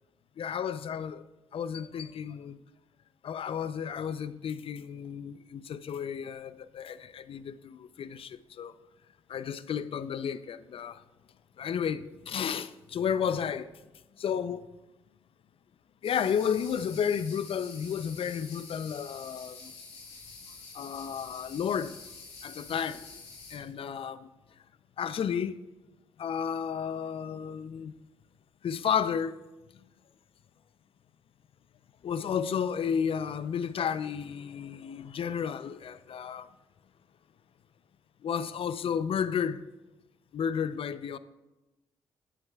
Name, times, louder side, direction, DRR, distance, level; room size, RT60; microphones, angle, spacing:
voice 1, 0.4-1.2 1.5-2.6 3.2-8.7 9.3-11.0 11.6-13.7 14.2-14.6 16.0-19.7 20.7-22.0 22.4-23.1 23.5-24.3 25.0-25.6 26.2-27.9 28.6-29.4 32.0-36.5 38.2-39.6 40.3-41.2, left 7 dB, 60° left, 0.5 m, -32 dB
sound 1, 16.0-23.6, left 4 dB, 85° left, 3.5 m, -48 dB
21.5 x 7.5 x 2.3 m
hypercardioid pair, 45°, 11 cm